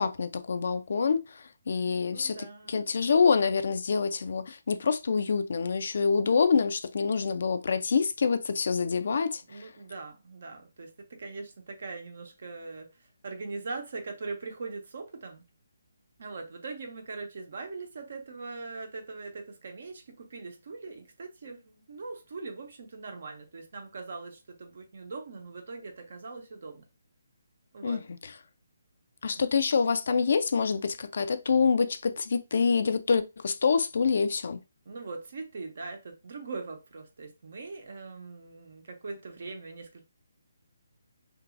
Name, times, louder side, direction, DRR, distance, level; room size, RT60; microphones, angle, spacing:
voice 1, 0.0-9.7 27.8-28.0 29.2-34.6, left 5 dB, 60° left, 0.3 m, -26 dB
voice 2, 1.9-2.9 9.5-15.4 16.2-26.8 27.7-28.0 34.8-40.0, right 3 dB, 60° right, 0.8 m, -41 dB
2.9 x 2.6 x 2.4 m
figure-of-eight pair, 150°, 0 cm